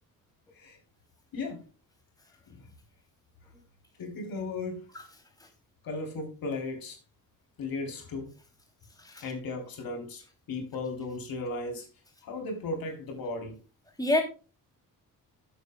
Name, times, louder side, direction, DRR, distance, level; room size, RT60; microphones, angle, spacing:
voice 1, 1.3-1.6 2.5-2.6 4.0-4.8 5.8-7.0 7.6-8.3 9.2-10.2 10.5-11.9 12.2-13.6, left 3 dB, 75° left, 3.5 m, -36 dB
voice 2, 3.5-3.6 4.9-5.0 5.4-5.5 9.0-9.2 14.0-14.2, left 1 dB, 10° left, 3.1 m, -28 dB
14.0 x 8.4 x 2.3 m
cardioid pair, 125°, 35 cm